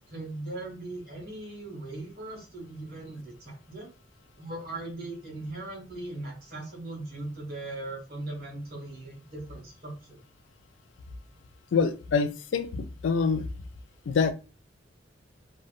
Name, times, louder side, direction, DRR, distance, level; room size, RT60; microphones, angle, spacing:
voice 1, 0.0-3.9 4.4-10.2, right 2 dB, 55° right, 1.2 m, -39 dB
voice 2, 11.7-13.4 14.1-14.3, left 5 dB, 85° left, 0.4 m, -26 dB
2.8 x 2.2 x 2.3 m
head